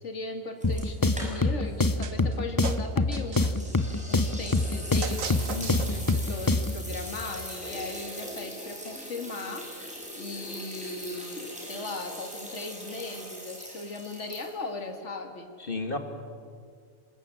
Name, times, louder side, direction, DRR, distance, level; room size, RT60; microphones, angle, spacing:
voice 1, 0.0-3.6 4.1-9.7 10.2-15.5, left 3 dB, 60° left, 5 dB, 2.5 m, -38 dB
sound 1, 0.6-6.9, left 2 dB, 20° left, 0.7 m, -26 dB
sound 2, 0.6-1.7 2.0-2.1 3.5-14.8, equal, 5° right, 6.6 m, -41 dB
sound 3, 2.0-2.4 2.6-3.7 5.0-6.4, right 6 dB, 85° right, 1.7 m, -38 dB
voice 2, 5.5-6.0 15.6-16.0, left 3 dB, 40° left, 6 dB, 2.2 m, -33 dB
25.5 x 20.5 x 9.0 m, 2.2 s
omnidirectional pair, 1.4 m